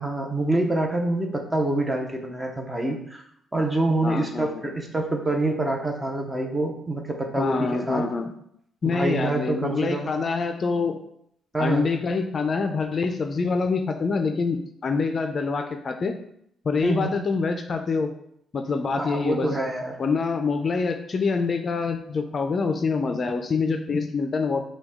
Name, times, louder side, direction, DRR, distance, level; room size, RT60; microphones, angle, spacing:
voice 1, 0.0-3.2 3.5-8.0 8.8-10.2 11.5-11.9 16.8-17.2 19.0-20.0, right 2 dB, 15° right, 2 dB, 0.8 m, -26 dB
voice 2, 4.0-4.7 7.4-8.3 8.8-11.0 11.6-16.2 16.6-18.1 18.5-19.6 20.0-24.6, left 4 dB, 45° left, 6 dB, 0.4 m, -26 dB
5.9 x 2.3 x 3.6 m, 0.71 s
cardioid pair, 90°, 0 cm